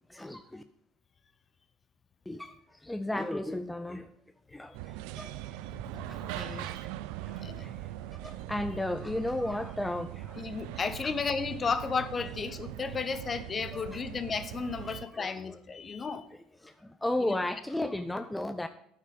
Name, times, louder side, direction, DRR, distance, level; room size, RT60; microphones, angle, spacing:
voice 1, 0.1-0.6 2.3-4.1 4.5-5.6 6.1-6.8 7.2-10.5 11.0-11.1 13.7-14.0 14.8-15.6 16.3-18.7, left 1 dB, 10° left, 9 dB, 0.5 m, -35 dB
sound 1, 4.7-15.1, right 14 dB, 65° right, 0.3 m, -41 dB
voice 2, 5.7-6.9 7.4-7.7 10.4-16.3 17.2-17.3, left 5 dB, 30° left, 13 dB, 0.8 m, -34 dB
9.7 x 6.0 x 4.9 m, 0.72 s
hypercardioid pair, 60°, 0 cm